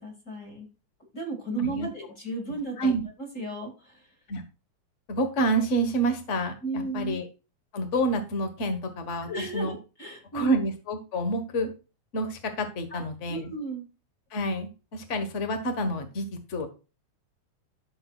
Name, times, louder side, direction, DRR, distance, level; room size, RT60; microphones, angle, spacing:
voice 1, 0.0-0.7 1.1-2.9 3.2-4.1 6.6-7.2 9.3-10.5 12.9-13.0 13.3-13.8, right 3 dB, 25° left, 1 dB, 2.2 m, -34 dB
voice 2, 5.1-7.3 7.7-9.7 10.3-11.7 12.1-13.5 14.3-16.7, right 1 dB, 50° left, 7 dB, 0.8 m, -28 dB
14.0 x 6.7 x 2.4 m, 0.32 s
omnidirectional pair, 3.5 m